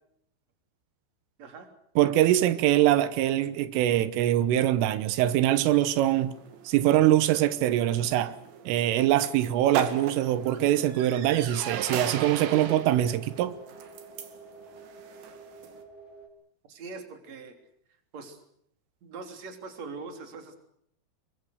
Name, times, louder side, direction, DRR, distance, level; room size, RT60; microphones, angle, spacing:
voice 1, 1.4-1.7 16.7-17.6 18.1-18.4 19.0-20.6, right 4 dB, 35° right, 4.1 m, -42 dB
voice 2, 2.0-6.3 6.7-8.4 8.7-13.5, right 13 dB, 90° right, 3.8 m, -23 dB
sound 1, 5.7-15.8, right 7 dB, 65° right, 4.3 m, -39 dB
sound 2, 9.7-16.3, right 3 dB, 30° left, 6.0 m, -49 dB
28.5 x 23.0 x 6.6 m
omnidirectional pair, 5.6 m